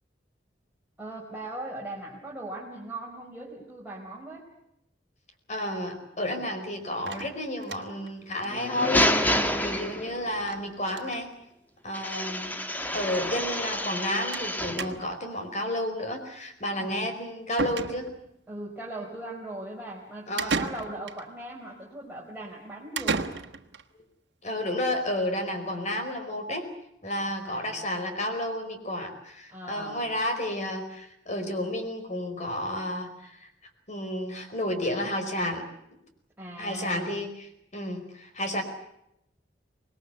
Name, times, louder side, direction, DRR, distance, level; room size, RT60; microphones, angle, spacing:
voice 1, 1.0-4.5 16.8-17.1 18.5-23.3 27.4-27.9 29.5-30.1 36.4-37.1, right 1 dB, 10° right, -4 dB, 4.4 m, -39 dB
voice 2, 5.5-11.3 11.8-12.6 12.9-18.1 20.3-20.7 24.4-26.7 27.0-33.5 33.9-35.6 36.6-38.6, left 1 dB, 40° left, 6 dB, 4.9 m, -31 dB
sound 1, 7.1-8.1 8.4-8.5 8.8-8.9 9.1-9.2 10.4-10.6 10.9-11.3 12.1-12.2 12.5-12.6 14.3-14.5 14.8-15.3 17.1-17.2 17.6-18.4 20.4-21.3 23.0-23.8, right 4 dB, 70° right, 1.6 m, -33 dB
sound 2, 8.4-10.4 11.9-14.9, left 1 dB, 10° left, 1.6 m, -28 dB
25.5 x 20.5 x 8.2 m, 0.81 s
head